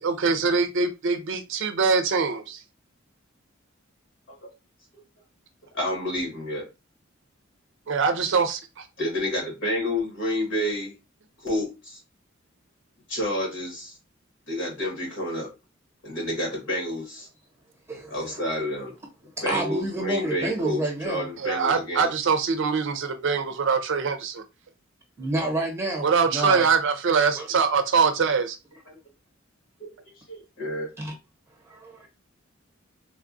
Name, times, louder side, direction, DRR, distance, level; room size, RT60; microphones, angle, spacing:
voice 1, 0.0-2.6 7.9-8.8 21.4-24.4 26.0-28.6, right 5 dB, 65° right, 0.5 m, -23 dB
voice 2, 5.7-6.7 9.0-10.9 11.4-12.0 13.1-14.0 14.5-15.5 16.0-17.3 18.1-18.9 19.4-22.1 28.9-29.0 29.8-29.9 30.3-30.9, left 1 dB, 65° left, 1.6 m, -29 dB
voice 3, 19.5-21.3 25.2-26.6 27.3-27.5 31.0-31.1 31.7-32.1, right 2 dB, 15° right, 0.9 m, -29 dB
3.3 x 2.3 x 2.5 m
head